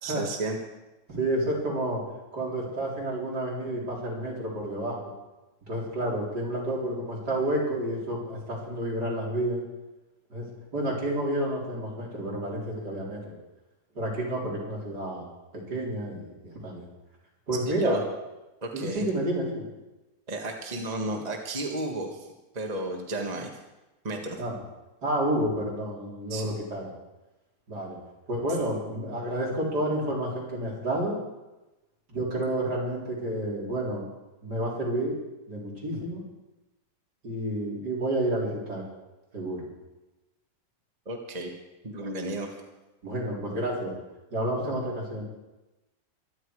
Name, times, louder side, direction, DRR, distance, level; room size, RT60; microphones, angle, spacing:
voice 1, 0.0-0.6 17.7-18.0 18.6-19.0 20.3-22.3 22.5-23.5 24.0-24.4 26.3-26.6 41.1-41.5 41.8-42.6, right 1 dB, 25° right, 2 dB, 1.7 m, -33 dB
voice 2, 1.1-2.0 2.3-5.1 5.7-9.6 10.3-10.5 10.7-13.2 13.9-15.3 15.5-16.9 17.5-18.0 18.7-19.6 24.4-24.6 25.0-26.9 27.7-28.0 28.3-31.1 32.1-34.0 34.4-35.1 35.5-36.2 37.2-38.8 39.3-39.7 43.0-43.9 44.3-45.2, right 1 dB, 65° right, -3 dB, 4.9 m, -30 dB
23.5 x 10.5 x 4.9 m, 1.0 s
omnidirectional pair, 1.9 m